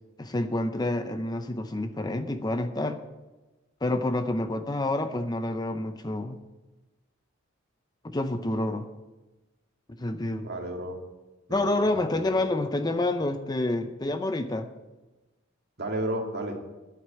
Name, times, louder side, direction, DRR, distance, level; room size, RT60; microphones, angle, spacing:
voice 1, 0.2-3.0 3.8-6.4 8.0-8.8 10.0-10.4 11.5-14.7, left 2 dB, 20° left, 8 dB, 0.6 m, -28 dB
voice 2, 10.2-11.0 11.5-12.4 15.8-16.6, right 1 dB, 55° right, 1 dB, 2.1 m, -33 dB
9.7 x 8.7 x 8.5 m, 1.1 s
head